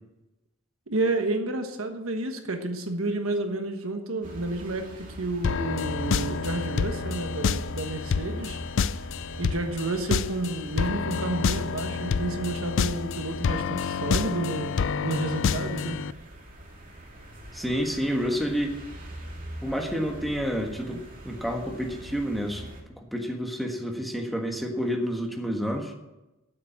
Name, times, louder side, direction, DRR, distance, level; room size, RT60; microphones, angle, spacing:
voice 1, 0.9-8.6 9.4-16.0 20.9-21.0, right 2 dB, 70° right, 6 dB, 1.3 m, -30 dB
sound 1, 4.2-22.8, right 1 dB, 40° right, 2.4 m, -43 dB
sound 2, 5.4-16.1, left 5 dB, 60° left, 0.4 m, -28 dB
voice 2, 17.5-18.7 19.6-22.7 23.0-25.9, equal, ahead, 1 dB, 1.4 m, -29 dB
8.8 x 8.4 x 8.6 m, 1.0 s
head